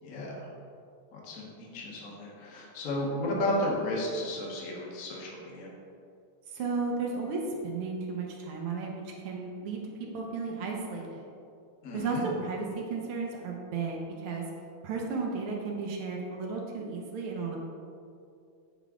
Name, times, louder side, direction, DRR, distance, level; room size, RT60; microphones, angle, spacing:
voice 1, 0.0-0.5 1.1-5.7 11.8-12.2, left 1 dB, 50° left, -3 dB, 1.2 m, -33 dB
voice 2, 6.5-9.8 10.1-11.3 11.9-14.4 14.8-17.6, right 4 dB, 85° right, -1 dB, 1.7 m, -34 dB
7.0 x 3.9 x 3.6 m, 2.4 s
omnidirectional pair, 2.4 m